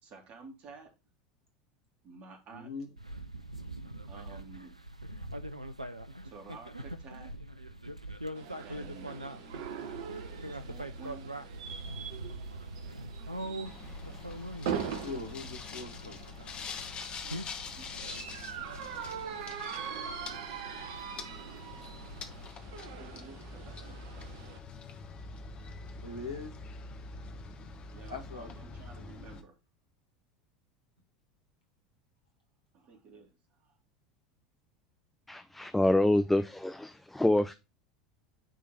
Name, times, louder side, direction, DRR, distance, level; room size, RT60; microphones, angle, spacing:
voice 1, 0.0-0.9 2.0-2.7 4.1-4.8 6.2-7.3 8.6-9.2 10.4-11.3 17.2-17.4 17.7-18.7 22.9-24.3 27.9-29.6 32.7-33.8, right 4 dB, 45° right, 3 dB, 2.5 m, -52 dB
voice 2, 2.5-2.9 9.4-9.7 15.0-16.2 26.0-26.5 28.1-28.5, left 3 dB, 80° left, 3 dB, 1.9 m, -41 dB
sound 1, 3.0-22.5, right 1 dB, 90° right, 0.5 m, -44 dB
sound 2, 8.3-24.6, right 7 dB, 60° right, 1.0 m, -42 dB
sound 3, 13.6-29.4, left 4 dB, 30° left, 1.2 m, -45 dB
voice 3, 35.3-37.5, left 1 dB, 5° left, 9 dB, 0.5 m, -26 dB
9.2 x 3.7 x 4.2 m, 0.25 s
figure-of-eight pair, 75°, 3 cm